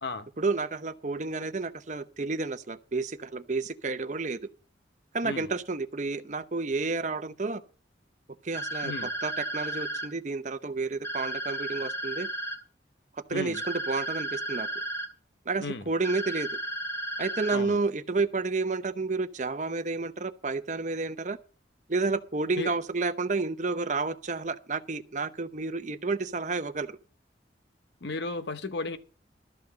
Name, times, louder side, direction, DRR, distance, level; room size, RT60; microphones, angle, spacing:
voice 1, 0.4-4.4 5.1-7.6 8.4-12.3 13.3-14.7 15.5-16.5 17.2-21.4 21.9-27.0, right 3 dB, 40° right, 0.8 m, -30 dB
sound 1, 8.5-10.1 11.0-12.6 13.5-15.1 16.0-17.6, right 1 dB, 15° left, 2.1 m, -34 dB
voice 2, 13.3-13.6 15.6-15.8 17.5-17.8 22.6-22.7 28.0-29.0, left 3 dB, 70° left, 0.9 m, -34 dB
13.0 x 5.9 x 7.6 m
head